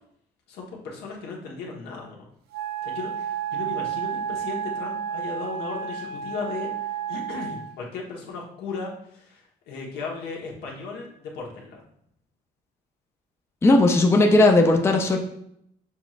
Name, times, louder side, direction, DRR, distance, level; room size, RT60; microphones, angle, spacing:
voice 1, 0.5-2.3 2.8-11.8, left 4 dB, 75° left, -2 dB, 1.2 m, -36 dB
Wind instrument woodwind instrument, 2.5-7.7, right 8 dB, 70° right, 0.5 m, -31 dB
voice 2, 13.6-15.2, left 2 dB, 15° left, 3 dB, 0.5 m, -17 dB
7.0 x 3.1 x 2.4 m, 0.73 s
cardioid pair, 110°, 17 cm